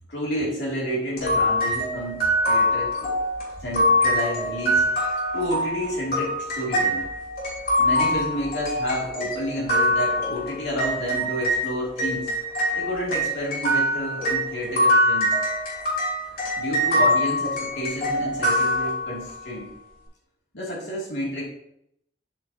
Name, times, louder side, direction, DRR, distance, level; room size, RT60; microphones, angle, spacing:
voice 1, 0.1-3.2 3.6-5.0 5.3-7.1 7.8-12.3 12.7-15.4 16.6-19.7 20.5-21.4, equal, 75° left, -5 dB, 2.8 m, -30 dB
sound 1, 1.2-11.7 12.0-19.4, equal, 55° left, 3.4 m, -24 dB
8.3 x 7.1 x 2.9 m, 0.76 s
head